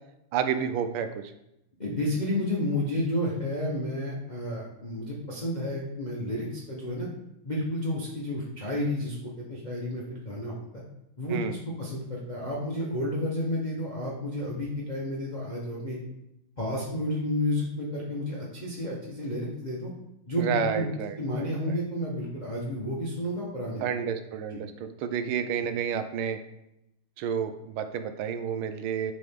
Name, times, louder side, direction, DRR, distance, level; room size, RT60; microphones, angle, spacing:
voice 1, 0.3-1.2 11.3-11.6 20.4-21.8 23.8-26.4 27.2-29.1, right 7 dB, 85° right, 9 dB, 1.5 m, -30 dB
voice 2, 1.8-7.1 7.4-10.5 11.2-16.0 16.6-19.9 20.3-20.9 21.2-23.8 24.5-24.6, left 1 dB, 45° left, -5 dB, 0.5 m, -31 dB
6.8 x 3.9 x 3.5 m, 0.85 s
omnidirectional pair, 2.3 m